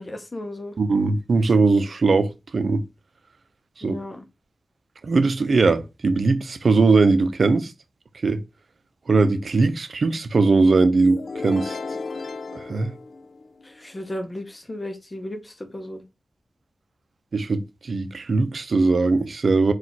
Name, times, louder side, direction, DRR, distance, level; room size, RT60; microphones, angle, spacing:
voice 1, 0.0-0.8 3.8-4.2 13.8-16.0, left 1 dB, 30° left, 0.7 m, -34 dB
voice 2, 0.8-2.3 2.5-2.8 3.8-4.0 5.0-7.7 8.2-8.4 9.1-11.8 12.5-12.9 17.3-19.7, right 3 dB, 65° right, 0.6 m, -20 dB
sound 1, 11.0-13.8, left 3 dB, 70° left, 0.4 m, -34 dB
4.1 x 2.4 x 4.4 m
wide cardioid pair, 75°, 0 cm